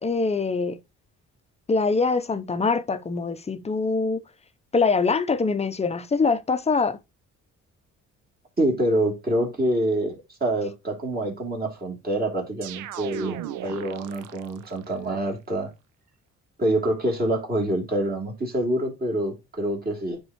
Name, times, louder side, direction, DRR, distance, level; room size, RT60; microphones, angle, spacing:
voice 1, 0.0-0.8 1.7-4.2 4.7-7.0, left 4 dB, 20° left, 0.6 m, -23 dB
voice 2, 8.6-15.7 16.6-20.2, right 1 dB, 30° right, 2.9 m, -26 dB
sound 1, 12.6-14.8, right 11 dB, 90° right, 0.6 m, -36 dB
9.8 x 3.7 x 3.0 m
cardioid pair, 90°, 30 cm